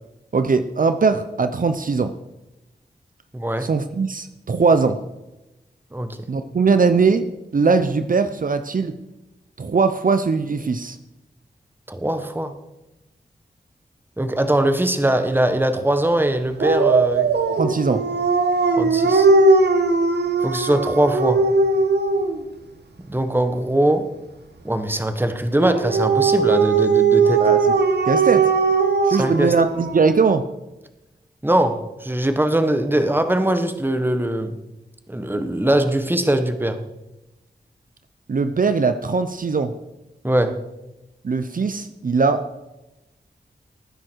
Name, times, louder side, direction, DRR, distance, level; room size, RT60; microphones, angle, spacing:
voice 1, 0.3-2.1 3.6-5.0 6.3-9.0 9.6-11.0 17.6-18.0 27.4-27.7 28.0-28.5 29.0-30.4 38.3-39.7 41.2-42.4, right 4 dB, 55° right, 10 dB, 0.7 m, -20 dB
voice 2, 3.3-3.7 5.9-6.2 11.9-12.5 14.2-17.3 18.8-19.3 20.4-21.4 23.0-24.1 24.6-27.4 29.2-29.5 31.4-34.5 35.1-36.8 40.2-40.6, right 1 dB, 10° right, 8 dB, 1.3 m, -21 dB
Dog, 16.6-22.4 25.6-30.2, right 4 dB, 80° right, 1.4 m, -18 dB
19.0 x 9.7 x 4.6 m, 0.99 s
wide cardioid pair, 65°, 17 cm